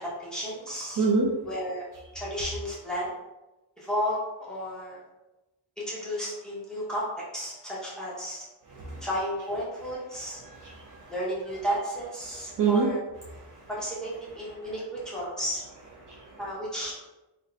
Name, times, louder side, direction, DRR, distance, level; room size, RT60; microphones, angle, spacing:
voice 1, 0.0-1.0 1.4-1.9 2.1-3.1 3.8-5.0 5.8-7.1 7.3-8.4 9.0-10.4 11.1-13.0 13.7-15.6 16.4-16.9, equal, ahead, -7 dB, 0.8 m, -33 dB
voice 2, 1.0-1.3 8.7-9.1 10.4-11.1 12.6-12.9 13.3-13.6 16.0-16.4, right 4 dB, 45° right, -3 dB, 0.4 m, -27 dB
2.6 x 2.2 x 3.8 m, 1.0 s
wide cardioid pair, 175°, 44 cm